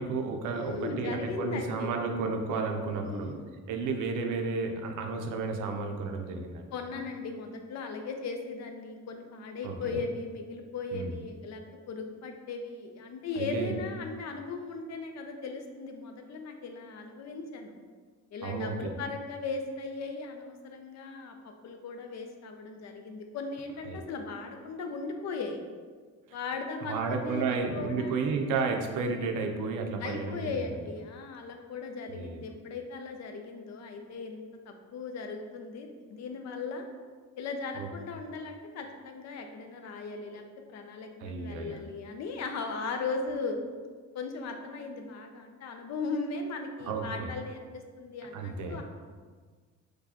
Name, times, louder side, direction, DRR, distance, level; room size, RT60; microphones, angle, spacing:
voice 1, 0.0-3.4 3.7-6.6 9.6-10.0 10.9-11.1 13.4-13.8 18.4-18.9 23.9-24.1 26.3-26.4 26.8-30.7 32.1-32.5 37.7-37.9 41.2-41.8 46.8-47.3 48.3-48.8, right 4 dB, 80° right, 3 dB, 0.5 m, -32 dB
voice 2, 0.5-2.0 3.0-3.4 6.7-11.6 11.9-17.7 18.3-25.6 26.3-28.3 30.0-36.9 37.4-40.4 40.7-43.6 44.1-48.8, left 4 dB, 60° left, 5 dB, 0.5 m, -38 dB
4.7 x 2.3 x 2.8 m, 1.5 s
cardioid pair, 90°, 30 cm